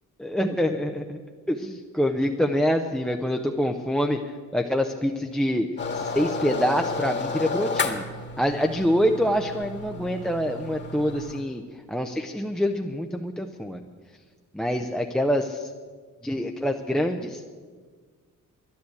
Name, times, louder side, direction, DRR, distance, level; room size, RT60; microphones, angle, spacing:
voice 1, 0.2-1.2 1.5-4.2 4.5-5.7 5.9-8.0 8.4-11.6 11.9-13.8 14.5-15.7 16.2-17.5, equal, ahead, 5 dB, 0.5 m, -25 dB
sound 1, 5.8-11.4, left 3 dB, 35° left, 1.5 m, -32 dB
11.0 x 10.5 x 8.4 m, 1.5 s
cardioid pair, 145°, 32 cm